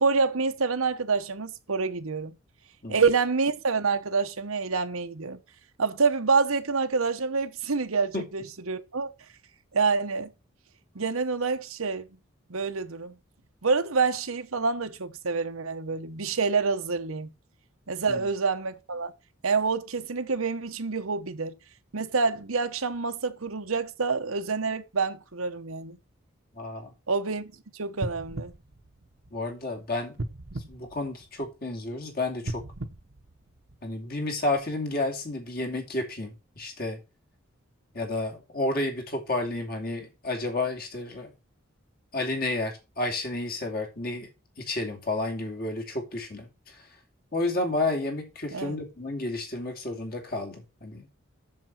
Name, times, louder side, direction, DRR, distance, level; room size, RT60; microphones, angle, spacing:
voice 1, 0.0-2.3 2.9-5.4 5.8-9.1 9.7-10.3 10.9-12.1 12.5-13.2 13.6-17.3 17.9-19.1 19.4-21.5 21.9-26.0 27.1-28.5 48.5-48.8, right 4 dB, 85° right, 1.1 m, -27 dB
voice 2, 26.6-26.9 29.3-30.2 30.7-32.6 33.8-37.0 37.9-41.3 42.1-44.3 44.6-46.5 47.3-51.1, left 2 dB, 45° left, 2.6 m, -31 dB
sound 1, 28.0-29.6 30.1-31.7 32.4-34.1 34.6-34.7, right 2 dB, 60° right, 1.0 m, -38 dB
7.4 x 6.9 x 6.0 m
head